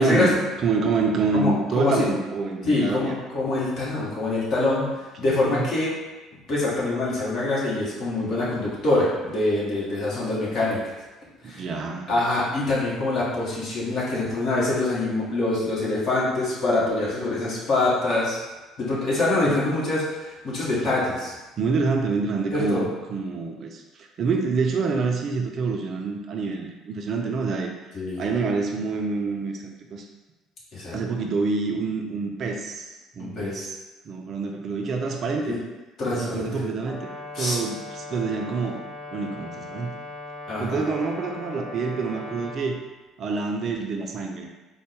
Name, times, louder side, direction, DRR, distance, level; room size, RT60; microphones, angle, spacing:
voice 1, 0.0-3.1 5.2-5.7 11.4-12.2 19.5-19.6 21.6-27.7 28.2-30.1 30.9-33.8 34.0-35.6 36.1-37.1 37.4-38.8 39.1-39.9 40.6-42.8 43.2-44.5, right 4 dB, 45° right, 2 dB, 0.4 m, -27 dB
voice 2, 1.3-2.1 2.6-5.9 6.5-10.9 11.4-11.6 12.1-18.4 18.8-21.3 22.5-22.8 27.9-28.2 30.7-31.0 33.2-33.7 35.5-35.6 36.0-36.6 37.3-37.6 40.5-40.8, left 2 dB, 50° left, -7 dB, 1.4 m, -25 dB
Brass instrument, 36.8-42.7, left 2 dB, 25° left, 0.9 m, -38 dB
3.8 x 2.1 x 3.4 m, 1.1 s
figure-of-eight pair, 55°, 0 cm